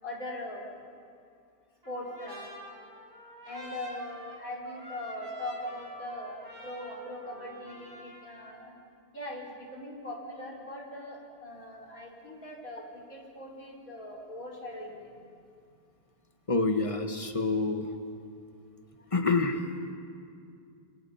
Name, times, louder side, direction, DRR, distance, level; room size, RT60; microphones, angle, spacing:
voice 1, 0.0-0.8 1.9-2.4 3.5-8.7 9.1-15.1, left 1 dB, 60° left, -3 dB, 5.0 m, -40 dB
Trumpet, 1.8-8.6, equal, 55° right, 6.6 m, -47 dB
voice 2, 16.5-17.9 19.1-19.6, left 3 dB, 20° left, 6 dB, 1.5 m, -27 dB
27.5 x 27.5 x 5.8 m, 2.4 s
omnidirectional pair, 1.7 m